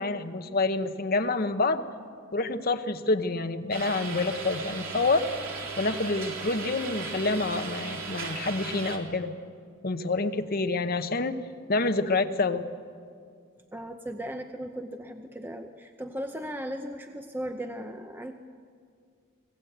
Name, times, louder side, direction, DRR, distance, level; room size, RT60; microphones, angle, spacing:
voice 1, 0.0-1.8 2.3-5.3 5.8-9.3 9.8-11.4 11.7-12.7, left 3 dB, 45° left, 8 dB, 0.9 m, -27 dB
sound 1, 3.7-9.0, right 4 dB, 70° right, 3.0 m, -37 dB
voice 2, 13.7-18.3, equal, 10° right, 5 dB, 0.6 m, -37 dB
25.0 x 17.5 x 8.0 m, 2.2 s
head